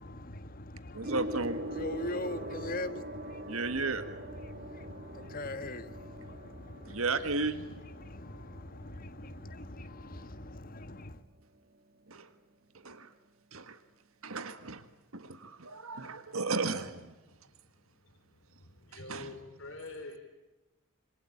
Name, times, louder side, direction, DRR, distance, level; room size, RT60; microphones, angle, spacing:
voice 1, 0.0-11.2, left 2 dB, 40° left, 1.4 m, -42 dB
voice 2, 0.9-1.6 3.5-4.0 6.9-7.6 12.1-12.3 12.7-13.1 13.5-13.8 14.2-14.9 15.1-17.1 18.9-19.3, right 3 dB, 75° right, 1.7 m, -34 dB
Gong, 1.0-10.8 11.7-12.0, equal, 45° right, 1.7 m, -43 dB
voice 3, 17.3-20.2, left 2 dB, 60° left, 4.0 m, -47 dB
27.0 x 25.0 x 8.7 m
head